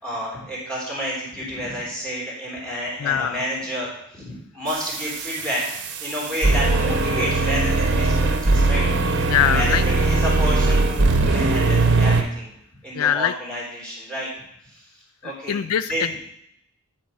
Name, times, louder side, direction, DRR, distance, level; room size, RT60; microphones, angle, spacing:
voice 1, 0.0-5.6 6.0-12.5 12.8-14.3 14.6-14.8 15.2-15.6 15.9-16.1, equal, 5° left, -5 dB, 3.4 m, -30 dB
voice 2, 3.0-3.4 9.3-9.8 12.9-13.3 15.2-15.9, left 10 dB, 75° left, 14 dB, 0.3 m, -22 dB
sound 1, 4.7-12.2, right 3 dB, 50° right, 0.9 m, -20 dB
11.0 x 4.5 x 6.2 m, 0.75 s
head